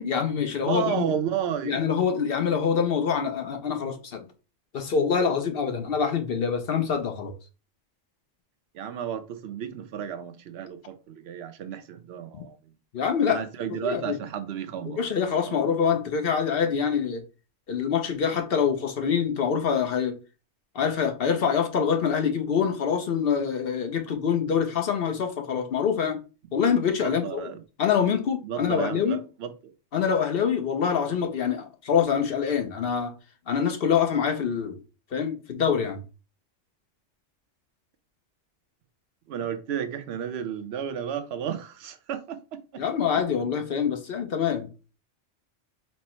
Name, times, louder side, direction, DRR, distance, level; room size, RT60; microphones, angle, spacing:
voice 1, 0.0-1.1 1.6-4.2 4.7-7.3 12.9-13.4 13.8-14.2 15.0-17.2 17.7-20.2 20.7-26.2 26.5-27.5 27.8-29.2 29.9-33.1 33.5-34.8 35.1-36.0 42.8-44.7, left 7 dB, 55° left, 0.8 m, -25 dB
voice 2, 0.6-1.8 8.7-12.6 13.3-15.0 15.4-15.8 27.0-27.6 28.4-29.5 39.3-42.8, right 8 dB, 65° right, 0.8 m, -32 dB
4.4 x 2.0 x 4.3 m
omnidirectional pair, 1.2 m